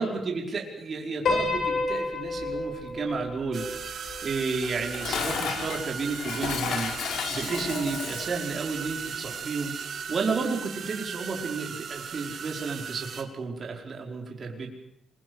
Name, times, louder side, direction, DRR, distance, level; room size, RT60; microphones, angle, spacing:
voice 1, 0.0-3.6 4.2-7.0 7.3-9.7 10.1-14.7, right 4 dB, 45° right, 1 dB, 5.2 m, -32 dB
Piano, 1.3-5.7, left 3 dB, 65° left, 7.2 m, -31 dB
sound 1, 3.5-13.2, right 7 dB, 65° right, 3.0 m, -37 dB
Dishes pots and pans, 4.6-8.4, left 7 dB, 85° left, 3.9 m, -33 dB
27.0 x 23.0 x 8.2 m, 0.77 s
cardioid pair, 115°, 0 cm